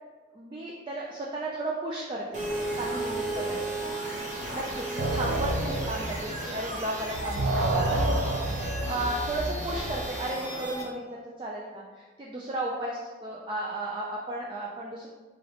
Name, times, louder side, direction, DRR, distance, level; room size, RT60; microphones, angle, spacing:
voice 1, 0.3-2.5 2.7-3.8 4.5-8.2 8.7-15.1, right 1 dB, 25° right, -3 dB, 0.3 m, -34 dB
sound 1, 2.3-10.8, right 2 dB, 40° right, 1.0 m, -35 dB
sound 2, 5.0-6.9 7.1-10.1, right 1 dB, 85° right, 0.5 m, -29 dB
sound 3, 5.9-10.9, left 1 dB, 40° left, 0.5 m, -43 dB
3.7 x 2.9 x 3.3 m, 1.4 s
head